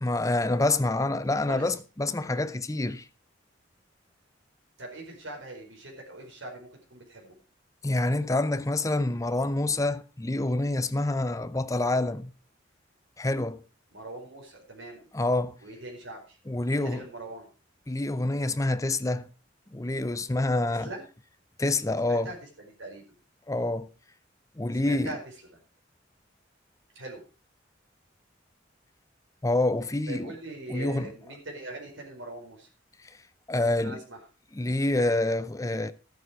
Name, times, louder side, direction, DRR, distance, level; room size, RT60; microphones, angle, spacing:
voice 1, 0.0-3.0 7.8-12.3 13.2-13.6 15.1-15.5 16.5-17.0 17.9-19.3 19.7-20.9 21.6-22.3 23.5-23.9 24.6-25.1 29.4-30.3 30.7-31.1 33.5-34.0 34.5-35.9, left 2 dB, 15° left, 0.6 m, -27 dB
voice 2, 4.8-7.3 13.9-15.1 15.6-16.4 16.7-17.5 20.7-21.0 22.0-23.0 24.7-25.2 26.9-27.2 30.1-32.7 33.6-34.2, right 2 dB, 80° right, 4.6 m, -42 dB
12.5 x 9.4 x 4.7 m
head